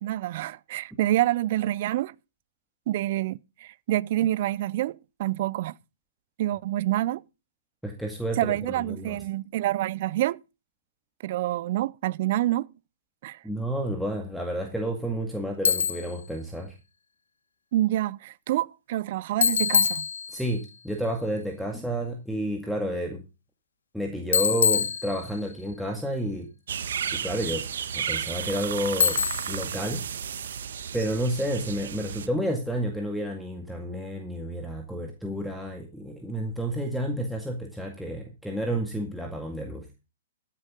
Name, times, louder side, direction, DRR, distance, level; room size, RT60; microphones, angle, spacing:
voice 1, 0.0-2.1 2.9-5.8 6.4-7.2 8.4-10.4 11.2-12.7 13.2-13.4 17.7-20.1, right 14 dB, 50° right, 0.5 m, -27 dB
voice 2, 7.8-9.2 13.4-16.7 20.3-23.2 23.9-26.5 27.1-27.7 27.9-30.0 30.9-39.9, right 1 dB, ahead, 2.0 m, -30 dB
Bicycle, 15.7-16.2 19.4-20.6 24.3-25.6 29.0-29.7, left 6 dB, 75° left, 1.6 m, -24 dB
sound 1, 26.7-32.3, right 8 dB, 65° right, 1.4 m, -33 dB
14.0 x 9.9 x 3.8 m
hypercardioid pair, 125°, 0 cm